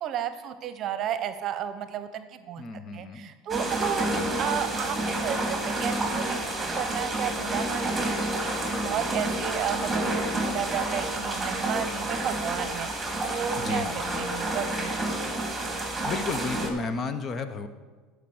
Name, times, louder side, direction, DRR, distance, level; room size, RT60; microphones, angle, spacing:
voice 1, 0.0-2.6 2.9-8.1 8.4-15.2, right 9 dB, 50° right, 11 dB, 0.8 m, -33 dB
voice 2, 2.6-3.3 4.1-4.4 13.6-14.4 16.0-17.7, left 4 dB, 40° left, 10 dB, 1.0 m, -33 dB
sound 1, 3.5-16.7, right 1 dB, 10° right, 2.6 m, -29 dB
13.5 x 5.0 x 7.8 m, 1.4 s
supercardioid pair, 90°, 0 cm